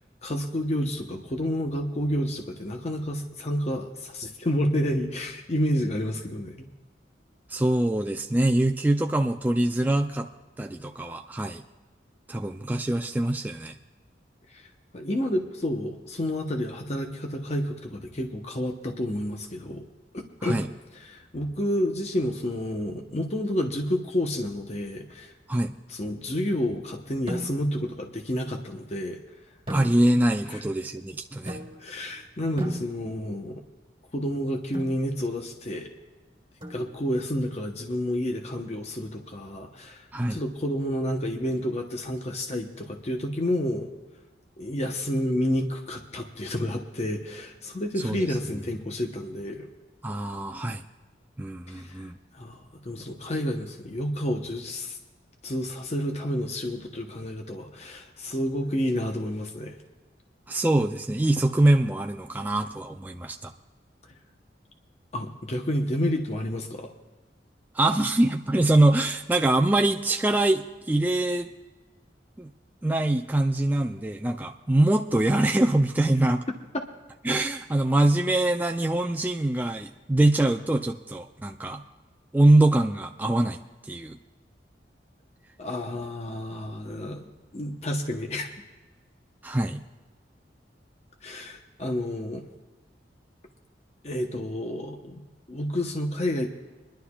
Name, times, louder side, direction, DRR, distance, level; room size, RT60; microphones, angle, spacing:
voice 1, 0.2-6.7 14.5-14.7 14.9-19.8 20.1-20.6 20.9-25.3 25.9-29.2 30.5-30.6 31.8-33.6 34.1-35.9 36.7-43.9 44.6-49.7 51.7-55.0 55.4-59.8 65.1-66.9 76.7-76.8 85.6-87.3 87.5-88.5 91.2-92.4 94.0-95.2 95.5-96.5, left 1 dB, 40° left, 3 dB, 0.9 m, -30 dB
voice 2, 7.5-10.3 10.6-11.6 12.3-13.8 20.4-20.7 25.5-25.7 29.7-31.6 40.1-40.4 48.0-48.3 50.0-50.8 51.4-52.2 60.5-63.5 67.8-71.5 72.4-72.5 72.8-76.4 77.2-81.8 82.3-83.6 83.9-84.2 89.4-89.8, right 1 dB, 10° right, 4 dB, 0.4 m, -24 dB
sound 1, 27.3-27.9 29.7-30.4 31.5-32.1 32.6-33.4 34.7-35.1 36.6-37.2, equal, 30° right, 2.0 m, -37 dB
25.0 x 11.5 x 2.3 m, 1.2 s
head